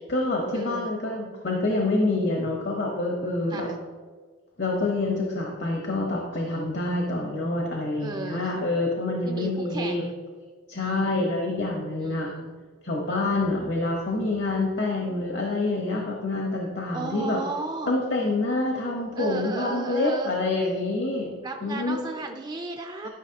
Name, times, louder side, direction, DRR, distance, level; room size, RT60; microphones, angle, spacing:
voice 1, 0.0-3.7 4.6-10.0 10.7-12.3 12.8-17.4 17.9-21.3 21.6-22.0, left 2 dB, 60° left, 0 dB, 1.1 m, -27 dB
voice 2, 0.5-0.9 3.5-3.8 8.0-8.6 9.2-10.1 10.8-11.2 12.0-12.6 16.9-17.9 19.2-20.4 21.4-23.1, right 3 dB, 20° right, 4 dB, 0.4 m, -34 dB
12.5 x 5.7 x 2.9 m, 1.5 s
head